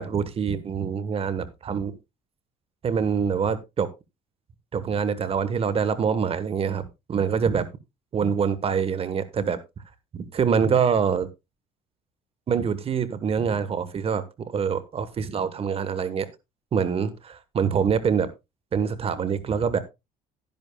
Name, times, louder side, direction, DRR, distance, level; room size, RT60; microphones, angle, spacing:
voice 1, 0.0-1.9 2.8-3.9 4.7-7.7 8.1-9.6 10.1-11.3 12.5-16.3 16.7-18.3 18.7-19.8, right 6 dB, 35° right, 1.2 m, -25 dB
13.0 x 10.5 x 2.3 m
cardioid pair, 120°, 16 cm